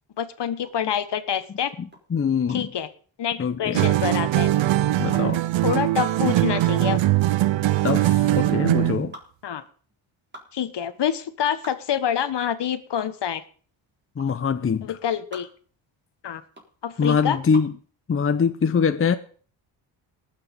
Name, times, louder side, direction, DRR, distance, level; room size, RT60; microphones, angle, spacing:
voice 1, 0.2-1.7 2.5-2.9 3.2-4.5 5.6-7.0 9.4-9.6 10.5-13.4 14.8-15.5 16.2-16.4 16.8-17.4, left 9 dB, 55° left, 1.3 m, -26 dB
sound 1, 0.6-17.8, equal, 20° right, 4.0 m, -46 dB
voice 2, 1.8-2.7 3.4-3.8 5.0-5.4 7.8-9.1 14.2-15.0 17.0-17.7 18.1-19.2, left 6 dB, 25° left, 0.8 m, -23 dB
sound 2, 3.7-9.1, right 15 dB, 65° right, 0.7 m, -21 dB
19.0 x 6.7 x 5.3 m
cardioid pair, 75°, 50 cm